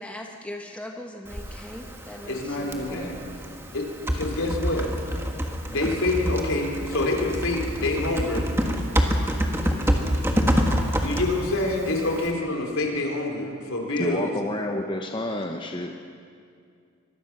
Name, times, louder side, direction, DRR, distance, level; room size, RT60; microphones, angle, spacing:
voice 1, 0.0-3.1, left 1 dB, 5° left, 1 dB, 1.3 m, -39 dB
Typing, 1.3-12.3, equal, 10° right, 1.5 m, -27 dB
voice 2, 2.3-3.2 3.7-3.9 4.1-4.9 5.7-8.5 11.0-14.3, left 2 dB, 75° left, 1 dB, 3.6 m, -26 dB
voice 3, 14.0-15.9, left 1 dB, 20° left, 2 dB, 0.9 m, -29 dB
25.0 x 20.0 x 6.1 m, 2.3 s
head